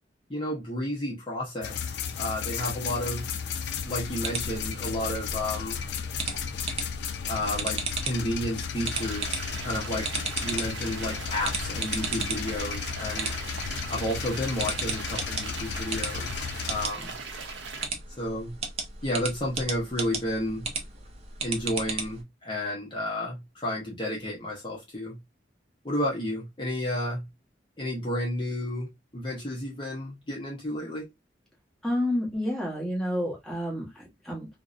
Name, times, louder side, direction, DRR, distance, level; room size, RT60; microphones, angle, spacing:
voice 1, 0.3-1.9 2.2-3.3 3.8-5.8 7.3-10.1 10.4-13.3 13.9-17.1 18.2-18.5 19.0-20.6 21.4-25.2 25.8-27.2 27.8-31.1, left 1 dB, 25° left, 0.7 m, -32 dB
sound 1, 1.6-16.9, left 7 dB, 65° left, 0.4 m, -34 dB
sound 2, 3.8-22.2, right 4 dB, 35° right, 0.5 m, -36 dB
sound 3, 8.9-17.9, right 4 dB, 80° right, 0.6 m, -40 dB
voice 2, 31.8-34.5, left 1 dB, ahead, 0.9 m, -29 dB
2.5 x 2.0 x 2.4 m
head